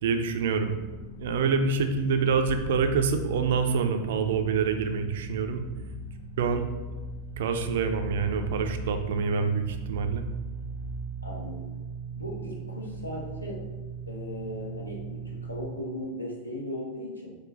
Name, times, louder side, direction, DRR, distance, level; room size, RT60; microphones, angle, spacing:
voice 1, 0.0-0.7 1.2-5.6 6.4-6.6 7.4-10.2, right 5 dB, 55° right, 7 dB, 0.4 m, -26 dB
sound 1, 0.8-15.7, right 3 dB, 45° left, 0.6 m, -38 dB
voice 2, 11.2-11.7 12.1-13.6 14.1-17.4, left 1 dB, 85° left, -2 dB, 0.8 m, -37 dB
4.7 x 2.2 x 3.8 m, 1.2 s
figure-of-eight pair, 90°, 0 cm